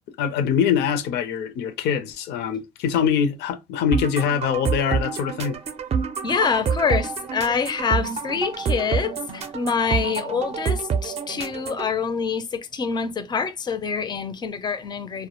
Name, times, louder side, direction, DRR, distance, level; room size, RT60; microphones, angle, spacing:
voice 1, 0.2-5.6, left 7 dB, 75° left, 0.5 m, -23 dB
sound 1, 3.9-11.9, right 6 dB, 40° right, 0.4 m, -27 dB
voice 2, 6.2-15.3, left 6 dB, 25° left, 0.4 m, -26 dB
2.1 x 2.0 x 2.8 m
cardioid pair, 110°, 17 cm